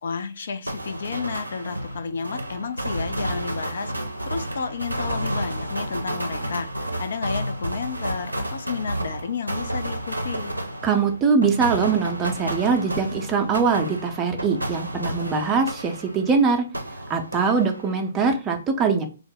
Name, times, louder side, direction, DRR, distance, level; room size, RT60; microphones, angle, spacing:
voice 1, 0.0-10.6, left 5 dB, 55° left, 0.4 m, -32 dB
sound 1, 0.7-16.4 16.7-18.1, right 1 dB, 85° right, 0.5 m, -31 dB
voice 2, 10.8-16.7 17.1-19.1, right 5 dB, 15° right, 0.5 m, -22 dB
3.0 x 2.0 x 3.7 m
figure-of-eight pair, 125°, 0 cm